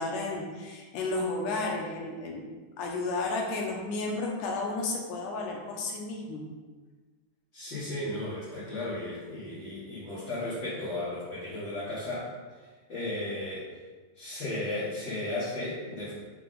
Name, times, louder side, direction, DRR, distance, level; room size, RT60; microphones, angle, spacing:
voice 1, 0.0-2.4 2.8-6.5, left 3 dB, 80° left, 0 dB, 2.4 m, -32 dB
voice 2, 7.5-12.3 12.9-13.7 14.2-16.1, left 1 dB, 40° left, -12 dB, 2.2 m, -35 dB
6.3 x 4.8 x 3.8 m, 1.4 s
omnidirectional pair, 3.7 m